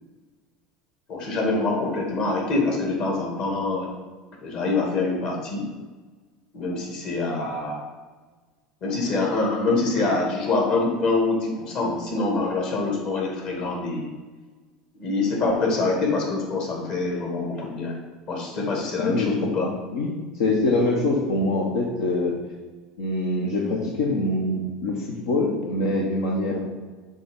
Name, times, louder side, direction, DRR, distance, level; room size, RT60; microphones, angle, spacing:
voice 1, 1.1-3.9 4.4-5.7 6.5-7.9 8.8-14.1 14.9-18.0 18.3-19.7, left 3 dB, 55° left, 0 dB, 2.3 m, -25 dB
voice 2, 19.0-22.4 23.0-26.6, left 2 dB, 80° left, -3 dB, 1.1 m, -24 dB
6.7 x 3.8 x 5.4 m, 1.3 s
supercardioid pair, 100°, 2 cm